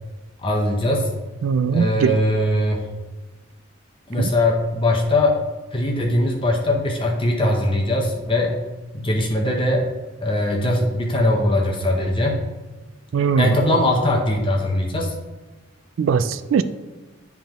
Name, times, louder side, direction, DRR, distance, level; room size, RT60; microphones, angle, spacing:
voice 1, 0.4-1.1 1.7-2.9 4.1-5.4 5.7-8.6 8.9-9.9 10.2-12.4 13.4-15.1, left 1 dB, 25° left, 1 dB, 0.7 m, -21 dB
voice 2, 1.4-2.2 4.2-4.3 13.1-13.6 16.0-16.6, right 6 dB, 75° right, 12 dB, 0.3 m, -20 dB
10.0 x 3.5 x 3.0 m, 1.3 s
head